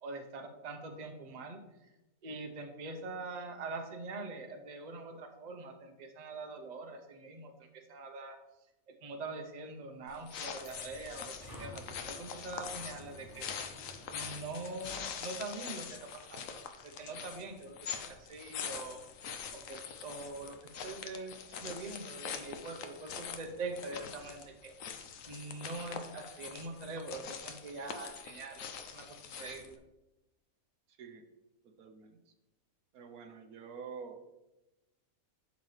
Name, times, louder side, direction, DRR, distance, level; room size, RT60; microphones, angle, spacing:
voice 1, 0.0-1.9 2.2-8.4 9.0-13.5 14.1-19.0 19.5-24.7 25.2-29.8, right 3 dB, 35° right, 3 dB, 0.8 m, -44 dB
sound 1, 9.9-15.2, left 1 dB, 20° left, 2.2 m, -53 dB
sound 2, 10.1-29.8, left 6 dB, 70° left, 1.0 m, -44 dB
voice 2, 30.9-31.2 31.8-32.2 32.9-34.3, right 6 dB, 85° right, 6 dB, 1.3 m, -47 dB
11.5 x 4.1 x 3.2 m, 0.97 s
omnidirectional pair, 1.5 m